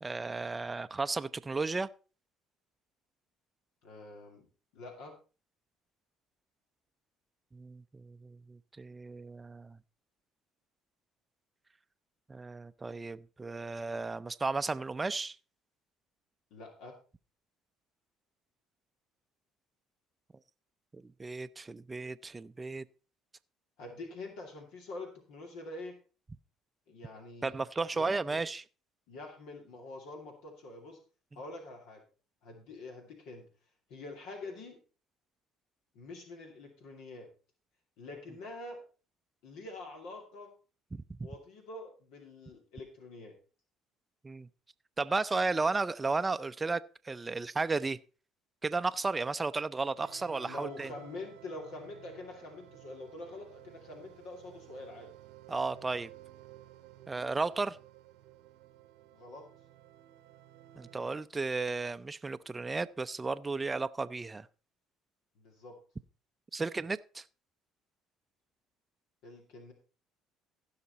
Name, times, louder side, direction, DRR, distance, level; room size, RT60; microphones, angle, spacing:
voice 1, 0.0-1.9 7.5-9.8 12.3-15.4 21.2-22.8 27.4-28.6 40.9-41.0 44.2-44.5 45.0-48.0 48.6-50.9 55.5-56.1 57.1-57.8 60.8-64.5 66.5-67.2, right 3 dB, 20° right, 0.5 m, -34 dB
voice 2, 3.8-4.5 4.7-5.2 16.5-16.9 23.8-25.9 26.9-27.6 27.9-28.4 29.1-31.0 31.3-32.0 32.4-33.5 33.9-34.8 35.9-37.3 38.0-38.8 39.4-40.5 41.2-43.3 50.4-55.1 59.1-59.4 65.4-65.8 69.2-69.7, left 2 dB, 75° left, 2.4 m, -46 dB
sound 1, 50.0-61.3, right 13 dB, 85° right, 0.9 m, -54 dB
15.5 x 5.8 x 4.1 m
supercardioid pair, 85°, 0 cm